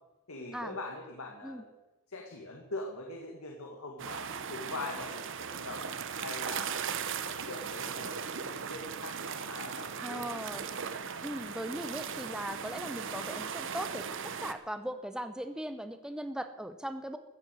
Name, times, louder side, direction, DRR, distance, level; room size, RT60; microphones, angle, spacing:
voice 1, 0.3-1.7 2.1-5.8 6.2-10.6, left 2 dB, 70° left, 1 dB, 1.9 m, -43 dB
sound 1, 4.0-14.5, right 7 dB, 60° right, 0.9 m, -38 dB
voice 2, 10.0-10.7 11.2-17.2, equal, 5° right, 9 dB, 0.6 m, -39 dB
14.5 x 7.8 x 9.0 m, 1.0 s
head